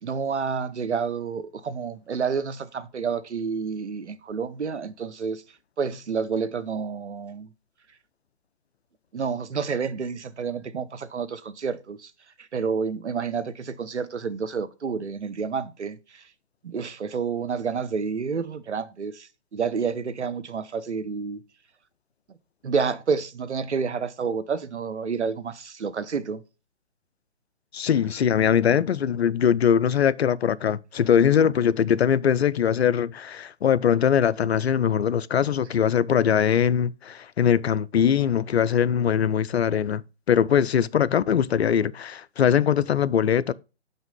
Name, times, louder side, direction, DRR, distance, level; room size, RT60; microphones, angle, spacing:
voice 1, 0.0-5.4 5.8-7.5 9.1-12.1 12.4-16.2 16.6-21.4 22.6-26.4, right 5 dB, 85° right, 1.0 m, -29 dB
voice 2, 27.7-40.0 40.3-43.5, left 8 dB, 70° left, 0.6 m, -21 dB
6.1 x 5.6 x 5.4 m
hypercardioid pair, 150°, 34 cm